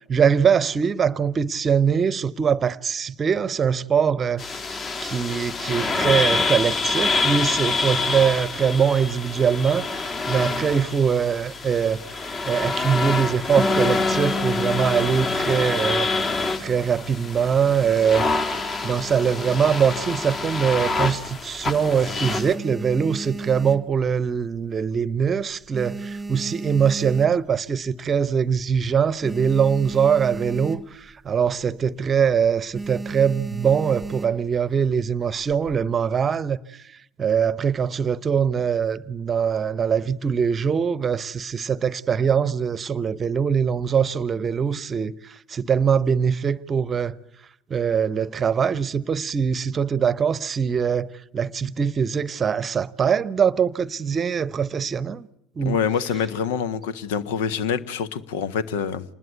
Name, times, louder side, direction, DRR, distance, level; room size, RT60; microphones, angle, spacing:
voice 1, 0.1-4.4 5.0-12.0 12.4-16.1 16.6-18.2 18.8-36.6 37.2-45.1 45.5-47.1 47.7-55.3 55.6-55.8, right 7 dB, 30° right, 1.0 m, -22 dB
sound 1, 4.4-22.5, left 3 dB, 30° left, 2.8 m, -26 dB
Harp, 13.6-17.0 17.3-18.4, left 2 dB, 10° left, 1.0 m, -33 dB
sound 2, 20.9-21.6 22.0-24.5 24.8-25.2 25.5-27.7 28.2-28.3 28.5-28.6 28.9-31.1 31.4-31.7 32.0-32.3 32.7-34.6 35.3-35.9, right 3 dB, 5° right, 1.7 m, -34 dB
voice 2, 55.6-59.0, left 7 dB, 65° left, 1.4 m, -26 dB
27.0 x 20.5 x 9.4 m
figure-of-eight pair, 70°, 0 cm